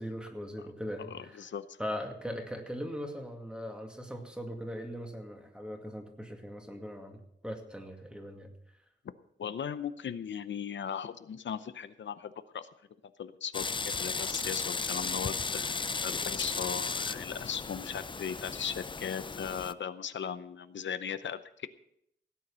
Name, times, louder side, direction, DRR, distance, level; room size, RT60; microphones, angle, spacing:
voice 1, 0.0-1.5 1.8-8.5, equal, 5° right, 3 dB, 2.1 m, -40 dB
voice 2, 1.0-1.6 9.4-12.7 13.2-21.7, left 8 dB, 85° left, 12 dB, 0.7 m, -38 dB
sound 1, 13.5-19.7, left 4 dB, 25° left, 0.4 m, -35 dB
17.0 x 9.4 x 5.6 m, 0.73 s
wide cardioid pair, 145°, 19 cm